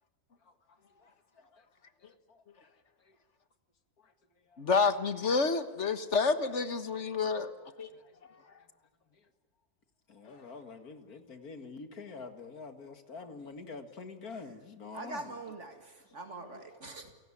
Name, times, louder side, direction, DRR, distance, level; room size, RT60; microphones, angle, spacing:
voice 1, 0.4-1.7 2.0-2.7 3.0-3.2 4.0-4.6 7.6-8.7 9.1-9.3 10.1-15.4 16.1-16.2, left 4 dB, 80° left, 2.5 m, -48 dB
voice 2, 4.6-7.5 7.8-7.9, left 4 dB, 50° left, 1.7 m, -29 dB
voice 3, 14.9-17.1, right 2 dB, 50° right, 2.3 m, -43 dB
29.5 x 17.0 x 10.0 m
omnidirectional pair, 1.6 m